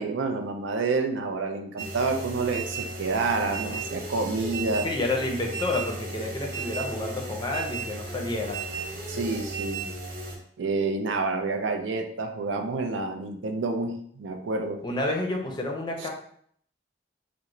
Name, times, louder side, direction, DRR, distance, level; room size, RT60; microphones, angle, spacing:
voice 1, 0.0-4.9 9.1-9.9 10.6-14.8 16.0-16.1, right 3 dB, 90° right, 5 dB, 0.4 m, -28 dB
sound 1, 1.8-10.4, right 3 dB, 50° right, 0.7 m, -35 dB
voice 2, 4.8-8.6 14.8-16.1, left 2 dB, 25° left, 1 dB, 0.5 m, -29 dB
3.0 x 2.1 x 3.7 m, 0.64 s
head